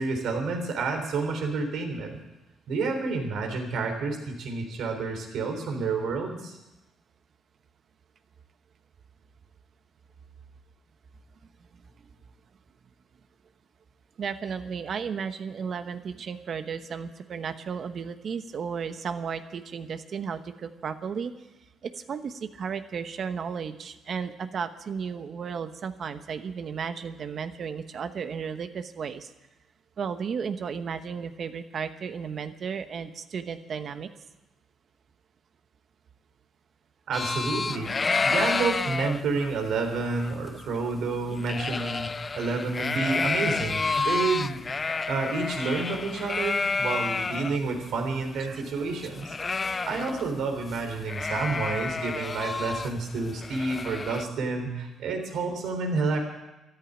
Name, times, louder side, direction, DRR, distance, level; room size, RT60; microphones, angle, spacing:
voice 1, 0.0-2.2 2.7-6.6 37.1-37.9 38.2-42.1 42.3-44.6 45.1-49.3 49.9-56.2, right 4 dB, 75° right, 4 dB, 3.6 m, -29 dB
voice 2, 14.2-21.3 21.8-29.3 30.0-34.1 48.4-48.6, right 6 dB, 55° right, 10 dB, 1.1 m, -34 dB
sound 1, 37.1-47.6 47.9-48.0 48.2-50.4 50.7-50.8 51.1-54.2, left 4 dB, 30° left, 0.5 m, -30 dB
14.0 x 10.5 x 9.4 m, 0.99 s
cardioid pair, 90°, 0 cm